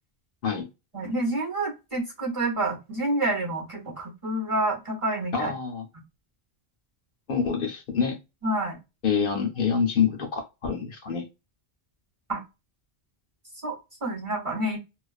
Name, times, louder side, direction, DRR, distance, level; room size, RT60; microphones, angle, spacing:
voice 1, 0.9-5.5 8.4-8.8 12.3-12.4 13.6-14.8, right 2 dB, 30° right, 0.9 m, -28 dB
voice 2, 5.3-5.9 7.3-8.2 9.0-11.3, left 6 dB, 60° left, 0.8 m, -26 dB
2.3 x 2.3 x 2.3 m
omnidirectional pair, 1.1 m